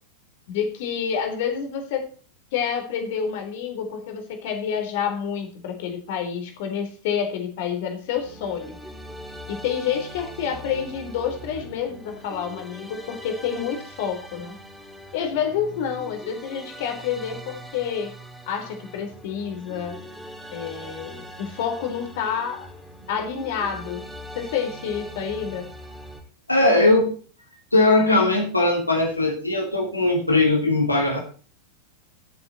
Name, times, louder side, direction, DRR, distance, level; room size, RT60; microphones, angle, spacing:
voice 1, 0.5-2.1 2.5-8.8 9.5-14.6 15.1-18.1 18.5-20.0 20.5-22.7 23.1-24.0 24.3-25.7, left 7 dB, 50° left, 5 dB, 3.9 m, -28 dB
sound 1, 8.1-26.2, right 1 dB, ahead, 4.3 m, -41 dB
voice 2, 26.5-27.1 27.7-31.2, left 2 dB, 85° left, 1 dB, 2.9 m, -19 dB
17.5 x 8.2 x 4.3 m, 0.40 s
figure-of-eight pair, 90°, 0 cm